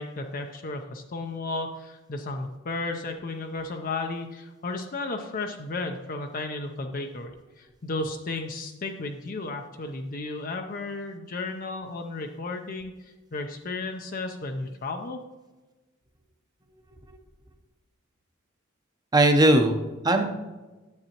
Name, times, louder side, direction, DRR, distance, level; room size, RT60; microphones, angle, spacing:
voice 1, 0.0-15.2, left 3 dB, 45° left, 4 dB, 0.6 m, -34 dB
voice 2, 19.1-20.2, right 1 dB, 20° right, 5 dB, 0.7 m, -19 dB
9.6 x 7.3 x 2.9 m, 1.2 s
head